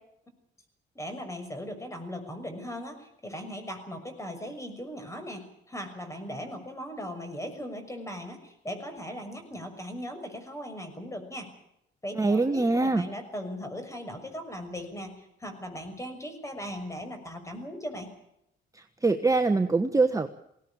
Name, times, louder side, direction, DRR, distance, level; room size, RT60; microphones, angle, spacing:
voice 1, 0.9-11.5 12.0-18.1, equal, 15° left, 7 dB, 6.3 m, -38 dB
voice 2, 12.1-13.1 18.7-20.3, right 3 dB, 15° right, 7 dB, 1.3 m, -24 dB
21.0 x 17.5 x 8.7 m, 0.78 s
cardioid pair, 90°, 20 cm